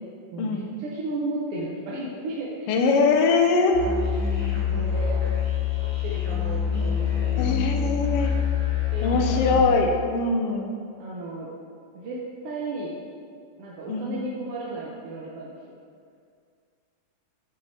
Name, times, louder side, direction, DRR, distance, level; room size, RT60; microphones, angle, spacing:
voice 1, 0.3-2.8 4.3-5.3 5.8-7.7 8.9-9.5 11.0-11.5 11.9-12.2 12.4-12.9 13.6-15.5, right 2 dB, 70° right, -5 dB, 1.4 m, -34 dB
voice 2, 2.7-3.8 7.4-8.3 9.0-10.8 13.9-14.3, left 4 dB, 85° left, 3 dB, 1.3 m, -22 dB
Musical instrument, 3.7-9.6, left 8 dB, 45° left, 1.8 m, -25 dB
8.1 x 6.8 x 2.7 m, 2.2 s
omnidirectional pair, 3.3 m